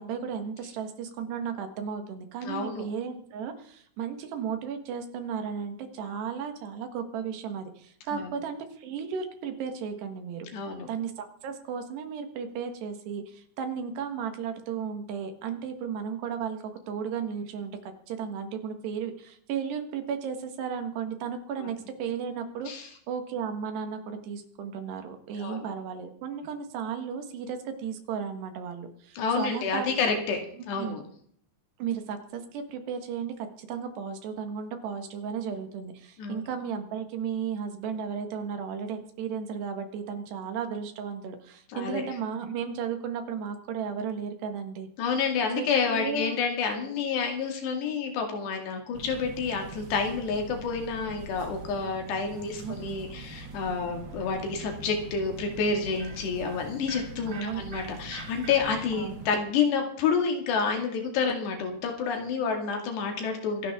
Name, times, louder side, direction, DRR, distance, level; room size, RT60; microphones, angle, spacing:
voice 1, 0.0-10.5 10.9-30.2 30.5-30.9 31.8-44.9 45.6-46.4 52.4-52.7 57.3-57.6 58.9-59.2, right 7 dB, 70° right, 7 dB, 3.5 m, -34 dB
voice 2, 2.5-2.9 8.1-8.3 10.5-10.9 21.6-21.7 22.7-22.8 25.4-25.6 29.2-30.4 30.7-31.0 36.2-36.4 41.7-42.0 45.0-63.7, left 5 dB, 70° left, 3 dB, 4.3 m, -29 dB
sound 1, 48.9-59.3, right 2 dB, 40° right, 1.7 m, -43 dB
25.5 x 11.0 x 3.7 m, 0.62 s
omnidirectional pair, 5.2 m